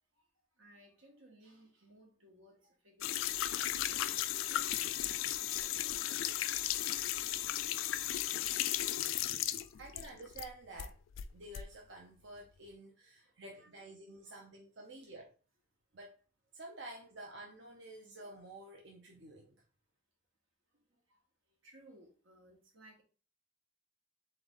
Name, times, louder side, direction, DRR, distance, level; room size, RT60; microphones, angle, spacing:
voice 1, 0.6-7.1 8.3-8.8 9.7-9.8 13.2-13.7 14.2-14.3 21.6-23.0, right 1 dB, 85° right, 1.4 m, -62 dB
sound 1, 3.0-10.5 10.8-11.6, left 12 dB, 80° left, 0.3 m, -35 dB
voice 2, 9.0-9.5 9.8-11.0 11.3-15.3 15.9-16.1 16.5-19.6, right 2 dB, 65° right, 0.7 m, -50 dB
3.9 x 3.3 x 3.7 m
head